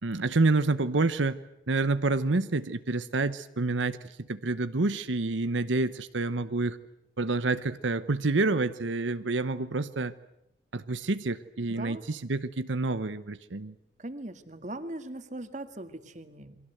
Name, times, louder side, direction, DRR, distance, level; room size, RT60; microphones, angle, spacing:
voice 1, 0.0-1.4 1.7-6.8 7.2-10.1 10.7-13.7, right 3 dB, 85° right, 12 dB, 0.9 m, -28 dB
voice 2, 11.7-12.0 14.0-16.6, right 1 dB, 40° right, 9 dB, 2.0 m, -40 dB
29.5 x 23.5 x 8.0 m, 0.81 s
head